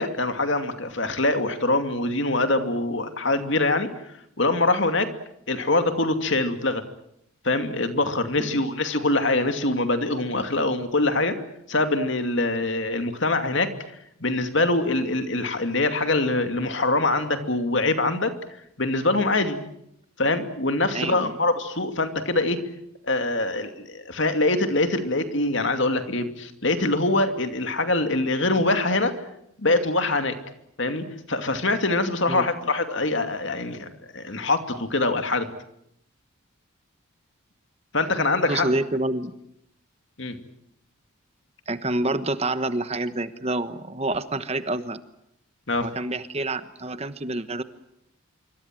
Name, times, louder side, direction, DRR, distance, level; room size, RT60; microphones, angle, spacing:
voice 1, 0.0-3.9 4.4-5.1 5.5-6.8 7.4-11.4 11.7-13.7 14.2-18.4 18.8-19.6 20.2-22.6 23.1-29.1 29.6-30.4 30.8-35.5 37.9-38.7 40.2-40.4 45.7-45.9, left 2 dB, 55° left, 7 dB, 2.6 m, -24 dB
voice 2, 20.9-21.3 32.3-32.5 38.4-39.3 41.7-45.0 45.8-47.6, right 2 dB, 30° right, 11 dB, 1.2 m, -28 dB
26.0 x 24.5 x 7.7 m, 0.76 s
head